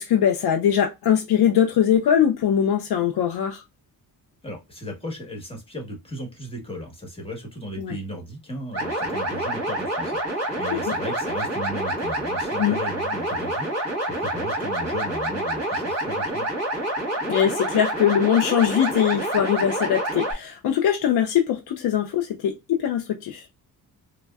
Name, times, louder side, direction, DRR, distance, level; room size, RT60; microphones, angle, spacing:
voice 1, 0.0-3.6 7.8-7.9 12.6-12.8 17.3-23.5, left 9 dB, 75° left, 0.6 m, -21 dB
voice 2, 4.4-16.5, equal, 15° left, 1.2 m, -36 dB
sound 1, 8.7-20.3, right 1 dB, 40° right, 1.7 m, -27 dB
3.3 x 2.1 x 2.3 m
cardioid pair, 100°, 38 cm